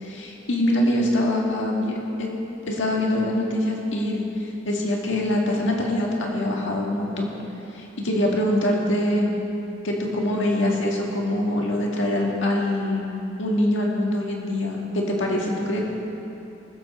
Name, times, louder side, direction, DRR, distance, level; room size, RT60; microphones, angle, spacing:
voice 1, 0.0-2.3 2.7-4.3 4.7-7.3 7.7-9.3 9.8-13.1 13.4-15.8, left 1 dB, 70° left, -1 dB, 1.9 m, -24 dB
20.5 x 8.0 x 4.3 m, 3.0 s
head